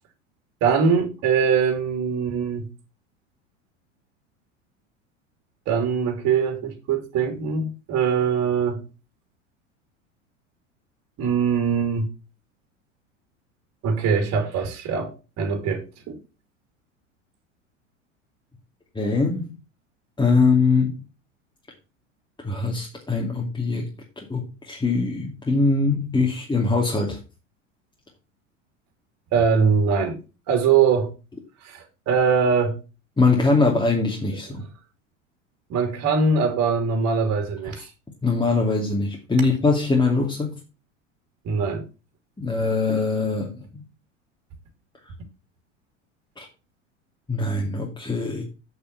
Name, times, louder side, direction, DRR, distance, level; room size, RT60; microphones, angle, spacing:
voice 1, 0.6-2.7 5.7-8.8 11.2-12.1 13.8-16.2 29.3-30.2 30.5-31.1 31.6-32.8 35.7-37.9 41.4-41.8, right 6 dB, 45° right, 3.0 m, -22 dB
voice 2, 18.9-19.5 20.2-21.0 22.4-23.9 24.2-27.2 33.2-34.6 38.2-40.5 42.4-43.8 46.4-46.5 47.3-48.4, left 3 dB, 10° left, 2.6 m, -22 dB
8.2 x 6.7 x 5.8 m
hypercardioid pair, 85°, 38 cm